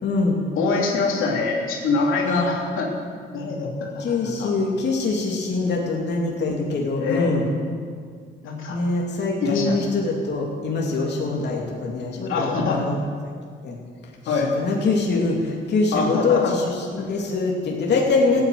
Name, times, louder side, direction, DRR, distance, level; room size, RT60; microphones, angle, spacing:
voice 1, 0.0-0.4 2.2-2.5 4.0-7.4 8.7-13.0 13.6-13.8 14.6-18.4, left 3 dB, 60° left, -2 dB, 2.8 m, -23 dB
voice 2, 0.5-2.9 3.3-4.5 7.0-7.4 8.4-8.8 9.4-9.8 12.2-12.9 14.2-14.5 15.9-16.5 17.0-17.1, left 4 dB, 85° left, -2 dB, 3.2 m, -24 dB
15.5 x 9.5 x 9.4 m, 2.1 s
cardioid pair, 90°, 20 cm